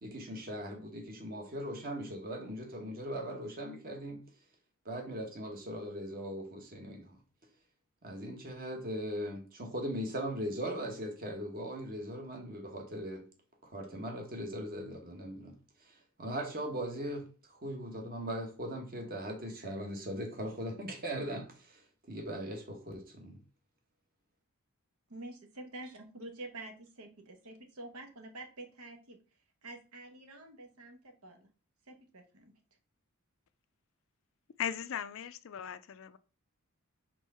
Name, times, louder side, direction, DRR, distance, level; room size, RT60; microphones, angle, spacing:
voice 1, 0.0-4.2 4.8-7.2 8.0-13.3 13.6-15.5 15.8-21.8 22.1-23.4, equal, 40° right, 1.4 m, -39 dB
voice 2, 25.1-29.2 29.6-31.5 31.9-32.5, right 2 dB, 80° right, 1.3 m, -48 dB
voice 3, 34.6-36.2, left 8 dB, 60° left, 0.4 m, -38 dB
4.6 x 3.8 x 5.6 m
head